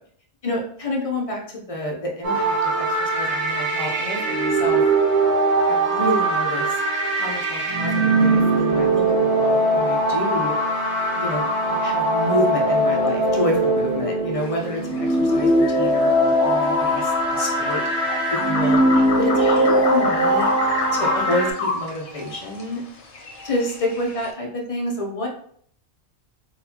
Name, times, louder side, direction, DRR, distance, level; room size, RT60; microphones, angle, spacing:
voice 1, 0.4-4.8 5.7-6.8 7.2-10.5 11.1-11.5 11.8-17.8 18.4-18.8 19.2-20.5 20.9-22.8 23.4-25.3, left 1 dB, 40° left, 0 dB, 0.6 m, -28 dB
sound 1, 2.2-21.5, right 1 dB, 80° right, 1.3 m, -21 dB
sound 2, 14.4-24.3, left 3 dB, 80° left, 1.1 m, -30 dB
4.0 x 2.4 x 2.8 m, 0.62 s
omnidirectional pair, 1.1 m